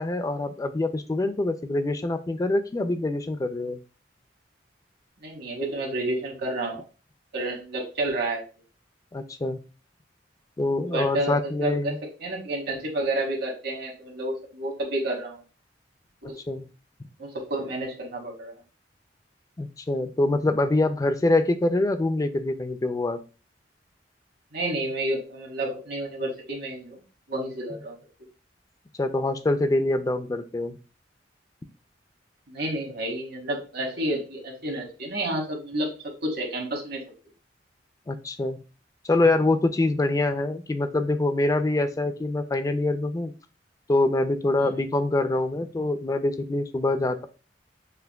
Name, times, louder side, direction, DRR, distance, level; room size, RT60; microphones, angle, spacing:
voice 1, 0.0-3.8 9.1-9.6 10.6-12.0 16.5-16.7 19.6-23.2 29.0-30.7 38.1-38.6 39.0-43.3 43.9-47.3, left 2 dB, 20° left, 10 dB, 0.3 m, -25 dB
voice 2, 5.2-6.8 7.3-8.4 10.8-11.9 12.2-15.4 16.3-16.4 17.2-18.5 24.5-26.9 27.3-28.0 32.5-37.0 44.6-44.8, right 1 dB, 60° right, 1 dB, 1.1 m, -30 dB
5.6 x 2.1 x 2.2 m, 0.33 s
head